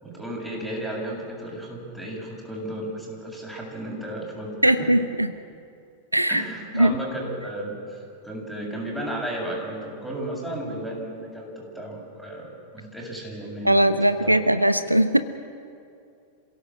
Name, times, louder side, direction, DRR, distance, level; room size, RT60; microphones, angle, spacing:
voice 1, 0.0-4.9 6.3-14.0 14.2-14.4, right 1 dB, 5° right, -2 dB, 7.2 m, -34 dB
voice 2, 4.6-5.3 6.1-6.4 6.7-6.9 13.6-15.2, right 1 dB, 85° right, 12 dB, 0.9 m, -19 dB
28.0 x 17.0 x 7.4 m, 2.5 s
figure-of-eight pair, 90°, 0 cm